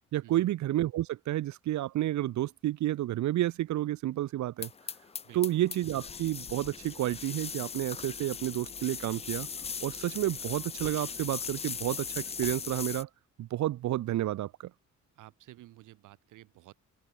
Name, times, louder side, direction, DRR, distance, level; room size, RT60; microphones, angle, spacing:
voice 1, 0.1-4.7 5.3-9.5 9.8-13.1 13.4-14.5, right 14 dB, 70° right, 0.8 m, -30 dB
sound 1, 4.6-13.0, left 6 dB, 20° left, 0.4 m, -39 dB
voice 2, 5.2-5.6 15.1-16.7, right 15 dB, 90° right, 6.6 m, -53 dB
cardioid pair, 90°, 30 cm